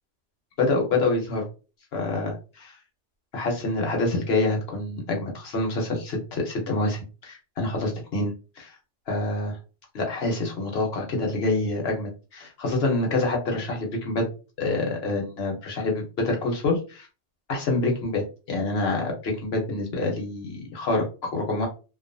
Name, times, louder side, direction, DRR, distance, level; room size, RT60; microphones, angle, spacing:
voice 1, 0.6-1.4 1.9-2.7 3.3-8.8 9.1-9.6 9.9-14.3 14.6-17.1 17.5-21.7, left 2 dB, 60° left, 1 dB, 1.0 m, -26 dB
2.5 x 2.3 x 2.5 m, 0.33 s
omnidirectional pair, 1.2 m